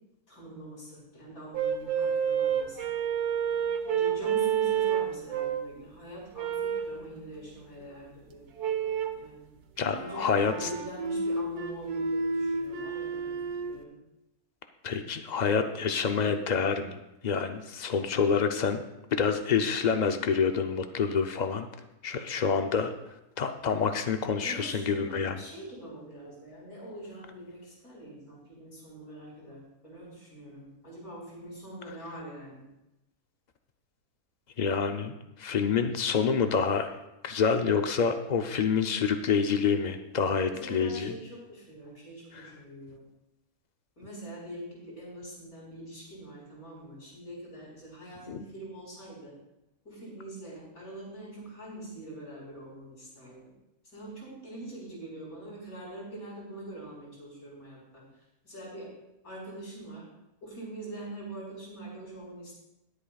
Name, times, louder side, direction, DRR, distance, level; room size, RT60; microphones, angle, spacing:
voice 1, 0.3-2.9 3.9-8.5 9.1-9.5 10.0-14.0 24.4-32.6 40.4-43.0 44.0-49.4 49.8-53.5 53.9-58.0 58.4-58.9 59.2-60.1 60.4-62.5, right 1 dB, 75° left, -5 dB, 5.2 m, -44 dB
sound 1, 1.5-5.8 6.4-7.0 8.6-9.2 9.8-13.8, right 7 dB, 85° right, 1.4 m, -30 dB
voice 2, 9.8-10.7 14.8-17.0 17.2-18.8 19.1-21.7 22.0-22.9 23.4-25.4 34.6-36.9 37.2-41.1 42.4-42.5 48.3-48.4, left 6 dB, 90° left, 7 dB, 0.3 m, -27 dB
22.0 x 8.5 x 2.3 m, 0.92 s
omnidirectional pair, 1.6 m